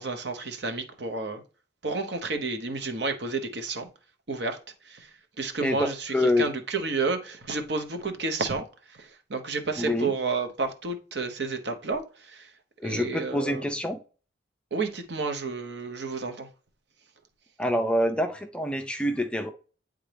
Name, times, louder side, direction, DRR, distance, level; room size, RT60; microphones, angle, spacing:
voice 1, 0.0-1.4 1.8-3.9 4.3-4.6 4.9-5.1 5.4-12.5 12.8-13.6 14.7-16.5, right 3 dB, 65° right, 0.9 m, -31 dB
voice 2, 6.1-6.5 9.8-10.1 12.8-14.0 17.6-19.5, left 1 dB, 5° left, 0.4 m, -26 dB
8.9 x 3.6 x 3.4 m
head